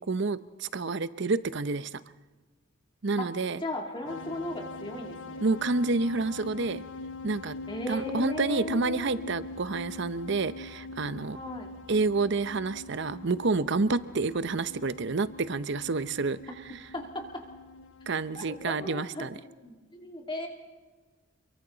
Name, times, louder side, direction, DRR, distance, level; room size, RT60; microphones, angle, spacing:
voice 1, 0.1-2.0 3.0-3.6 5.4-6.8 7.2-7.6 7.9-11.4 11.9-16.4 18.1-19.3, right 3 dB, 60° right, 14 dB, 0.7 m, -29 dB
voice 2, 3.6-5.4 7.7-9.2 11.3-11.7 16.9-17.4 18.3-18.4 18.8-20.5, left 1 dB, 25° left, 1 dB, 2.9 m, -37 dB
sound 1, 4.1-18.9, left 3 dB, 70° left, 1.1 m, -43 dB
29.5 x 23.0 x 4.0 m, 1.3 s
head